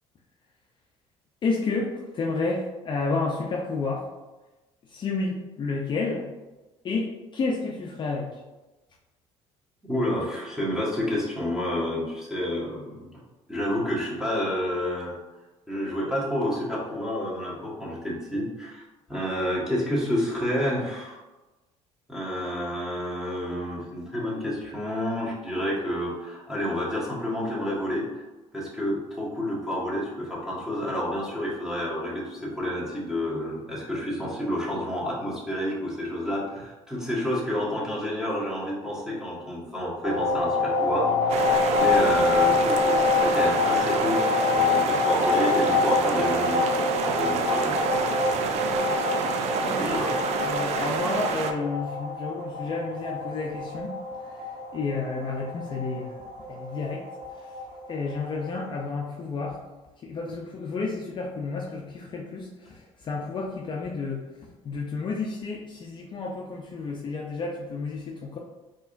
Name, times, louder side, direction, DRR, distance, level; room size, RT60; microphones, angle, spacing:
voice 1, 1.4-4.1 4.9-6.3 6.8-8.4 49.6-50.0 50.5-53.9 54.2-57.0 57.4-57.5 57.9-59.6 60.0-64.3 64.6-68.4, left 4 dB, 40° left, -1 dB, 0.5 m, -31 dB
voice 2, 9.9-13.1 13.5-15.2 15.7-21.2 22.1-28.2 28.5-41.4 41.8-46.7 47.1-47.8 48.3-48.4 49.8-50.1, left 1 dB, 5° right, -6 dB, 1.4 m, -29 dB
sound 1, 40.0-58.6, left 3 dB, 85° right, 1.3 m, -26 dB
sound 2, 41.3-51.5, right 5 dB, 60° right, 0.4 m, -29 dB
4.5 x 2.9 x 2.5 m, 1.1 s
cardioid pair, 105°, 13 cm